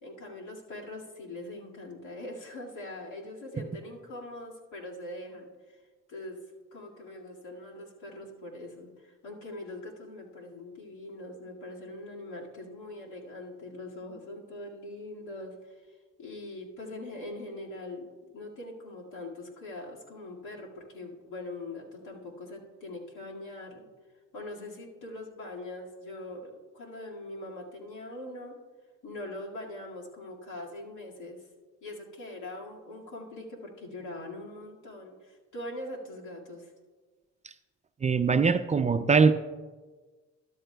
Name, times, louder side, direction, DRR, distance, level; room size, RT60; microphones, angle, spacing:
voice 1, 0.0-5.8 6.1-6.4 6.7-23.9 24.3-28.6 29.0-31.5 31.8-36.7, left 1 dB, 80° left, 2.1 m, -42 dB
voice 2, 38.0-39.3, right 5 dB, 25° right, 0.3 m, -22 dB
13.5 x 11.5 x 2.3 m
cardioid pair, 90°, 30 cm